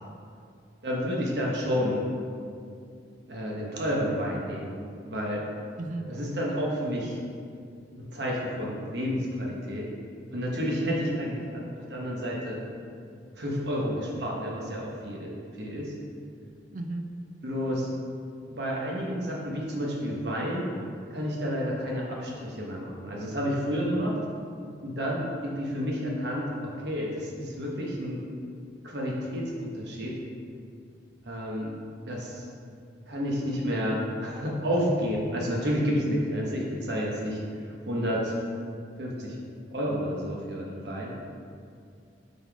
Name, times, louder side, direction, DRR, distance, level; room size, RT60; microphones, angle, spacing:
voice 1, 0.8-2.0 3.3-4.8 5.0-5.5 6.1-7.2 8.0-9.9 10.3-12.6 13.4-15.9 17.4-17.9 18.5-20.7 21.1-24.2 24.8-28.2 28.8-30.2 31.2-31.7 32.1-32.5 33.1-38.6 39.0-39.4 39.7-41.1, equal, 65° right, -3 dB, 1.0 m, -30 dB
voice 2, 5.8-6.1 10.8-11.2 16.7-17.1, right 2 dB, 45° right, 5 dB, 0.4 m, -34 dB
5.2 x 4.1 x 4.5 m, 2.3 s
head